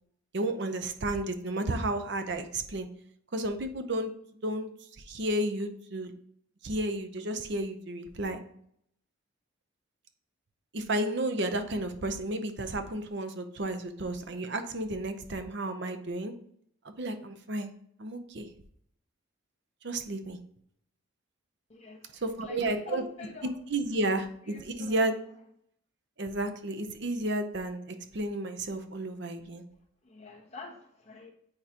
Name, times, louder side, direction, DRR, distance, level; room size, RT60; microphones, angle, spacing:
voice 1, 0.3-2.9 3.3-4.1 4.4-4.7 5.0-6.1 6.6-8.4 10.7-16.3 16.8-17.7 18.0-18.5 19.8-20.4 22.2-23.0 23.4-25.1 26.2-29.6, right 1 dB, 55° right, 8 dB, 0.7 m, -32 dB
voice 2, 21.7-23.5 24.5-25.0 30.0-31.3, left 3 dB, 30° left, 0 dB, 1.2 m, -45 dB
8.8 x 4.8 x 2.9 m, 0.68 s
head